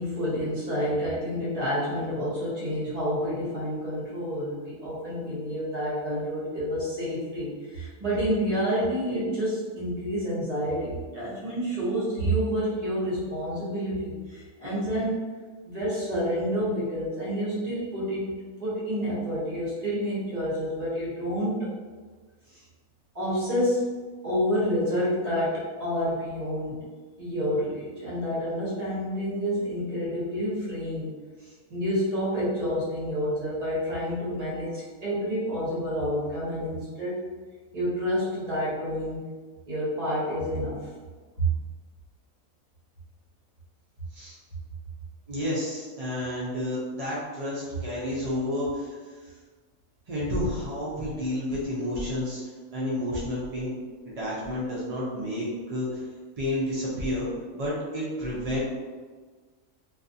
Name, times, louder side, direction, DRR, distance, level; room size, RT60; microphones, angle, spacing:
voice 1, 0.0-15.3 15.6-18.3 18.6-21.7 22.5-22.6 23.1-23.9 24.2-26.8 27.2-31.1 31.4-37.2 37.7-39.2 39.7-40.8 41.4-41.5, equal, 35° right, -8 dB, 0.9 m, -29 dB
voice 2, 45.3-49.0 50.1-52.4 52.7-53.7 54.1-56.0 56.4-57.3 57.5-58.6, left 1 dB, 65° right, -7 dB, 0.3 m, -30 dB
2.5 x 2.4 x 2.6 m, 1.4 s
omnidirectional pair, 1.4 m